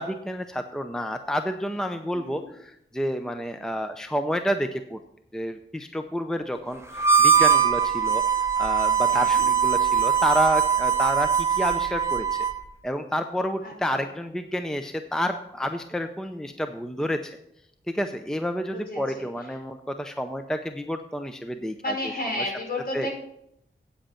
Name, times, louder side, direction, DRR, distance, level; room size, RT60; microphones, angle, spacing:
voice 1, 0.0-5.0 5.3-8.2 8.6-12.4 12.8-17.4 17.9-22.5 22.9-23.1, equal, 5° left, 7 dB, 0.6 m, -29 dB
voice 2, 2.1-2.4 9.1-9.4 13.6-14.0 18.7-19.3 21.8-23.1, left 1 dB, 50° left, -1 dB, 4.8 m, -32 dB
Harmonica, 6.9-12.6, right 7 dB, 15° right, 1.2 m, -21 dB
8.8 x 7.8 x 5.7 m, 0.75 s
wide cardioid pair, 80°, 20 cm